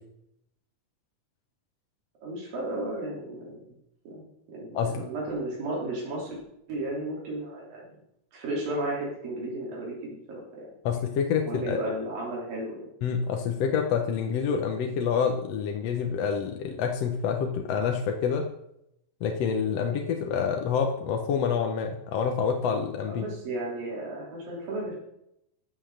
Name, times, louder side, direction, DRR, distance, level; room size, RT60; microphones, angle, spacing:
voice 1, 2.2-3.6 4.0-6.4 6.7-8.0 8.3-10.6 11.4-12.8 23.1-24.9, right 1 dB, 85° right, -4 dB, 5.0 m, -34 dB
voice 2, 4.7-5.1 10.9-11.8 13.0-18.5 19.2-23.2, left 6 dB, 65° left, 3 dB, 1.8 m, -27 dB
14.0 x 6.3 x 6.6 m, 0.79 s
omnidirectional pair, 3.9 m